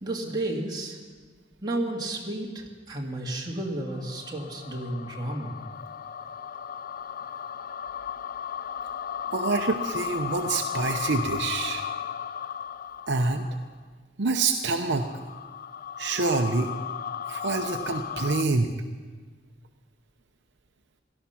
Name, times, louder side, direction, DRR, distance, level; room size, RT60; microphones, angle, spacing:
voice 1, 0.0-1.0 1.6-5.5, right 1 dB, 20° right, -2 dB, 2.2 m, -32 dB
sound 1, 3.9-13.6 14.7-18.4, left 8 dB, 45° left, 0.4 m, -35 dB
voice 2, 9.3-11.8 13.1-13.5 14.2-15.1 16.0-16.7 17.3-18.7, right 3 dB, 65° right, 5 dB, 0.8 m, -26 dB
17.5 x 12.5 x 5.8 m, 1.5 s
head